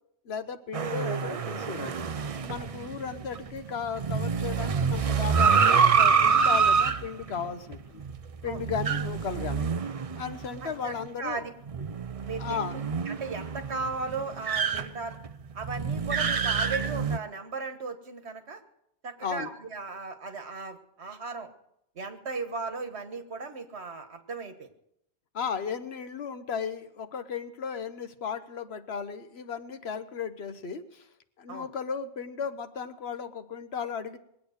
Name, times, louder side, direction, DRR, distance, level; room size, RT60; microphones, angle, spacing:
voice 1, 0.2-2.1 2.5-8.0 8.4-9.7 10.2-11.4 12.4-12.7 19.2-19.5 25.3-31.1 31.4-34.2, left 6 dB, 70° left, 10 dB, 1.2 m, -35 dB
sound 1, 0.7-10.7 11.0-11.1 11.7-17.2, right 6 dB, 40° right, 0.6 m, -27 dB
voice 2, 10.6-11.5 11.8-11.9 12.2-15.2 15.5-18.6 19.0-21.5 21.9-24.7 31.5-31.7, right 4 dB, 85° right, 7 dB, 1.7 m, -37 dB
21.0 x 8.5 x 6.5 m, 0.76 s
omnidirectional pair, 1.1 m